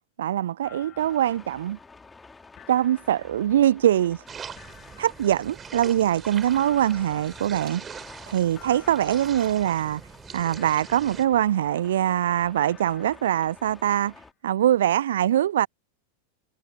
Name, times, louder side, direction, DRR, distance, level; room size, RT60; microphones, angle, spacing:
voice 1, 0.2-1.8 2.7-4.2 5.0-7.8 8.3-10.0 10.3-14.1 14.4-15.7, right 11 dB, 60° right, 0.5 m, -23 dB
sound 1, 0.6-2.3 2.6-4.2 4.6-6.2 6.6-8.3 8.6-10.3 10.6-12.2 12.6-14.2, left 11 dB, 30° left, 7.5 m, -53 dB
sound 2, 1.0-14.3, left 3 dB, 10° left, 4.1 m, -50 dB
sound 3, 4.3-11.3, right 7 dB, 20° right, 7.9 m, -42 dB
figure-of-eight pair, 90°, 0 cm